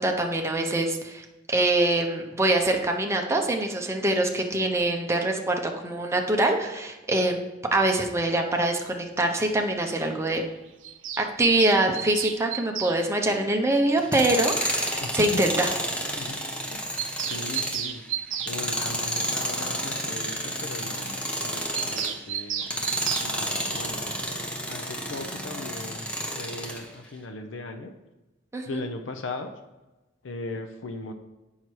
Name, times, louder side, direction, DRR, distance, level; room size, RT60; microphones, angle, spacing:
voice 1, 0.0-7.4 7.7-10.4 11.2-15.7 28.5-28.8, right 1 dB, 15° right, 2 dB, 0.8 m, -24 dB
Bird vocalization bird call bird song, 10.8-13.0 14.4-14.5 14.8-14.9 15.1-15.2 15.5-15.6 15.8-15.9 16.2-16.3 16.6-18.6 21.7-23.3, right 9 dB, 90° right, 0.7 m, -32 dB
Tools, 14.0-22.2 22.6-26.8, equal, 5° left, 1.0 m, -31 dB
voice 2, 15.0-15.4 16.2-16.4 16.7-16.8 17.3-18.0 18.5-24.2 24.7-27.9 28.7-29.6 30.2-31.1, left 2 dB, 80° left, 6 dB, 0.6 m, -38 dB
8.0 x 5.7 x 4.6 m, 1.1 s
head